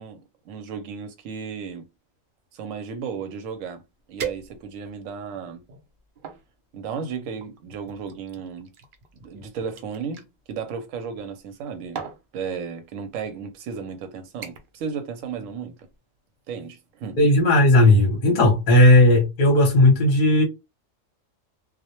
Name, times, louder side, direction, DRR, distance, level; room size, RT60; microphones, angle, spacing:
voice 1, 0.0-1.9 2.5-3.8 4.1-5.6 6.7-8.7 9.2-12.0 12.3-15.8 16.5-17.2, right 6 dB, 85° right, 1.0 m, -34 dB
sound 1, 3.5-3.6 4.2-5.0 5.6-6.4 7.4-10.3 11.4-11.6 11.9-12.3 13.1-13.3 13.7-14.0 14.4-14.8 15.1-15.5 15.9-16.0, right 7 dB, 60° right, 0.5 m, -38 dB
voice 2, 17.2-20.4, left 1 dB, 45° left, 0.8 m, -16 dB
2.2 x 2.1 x 2.8 m
omnidirectional pair, 1.3 m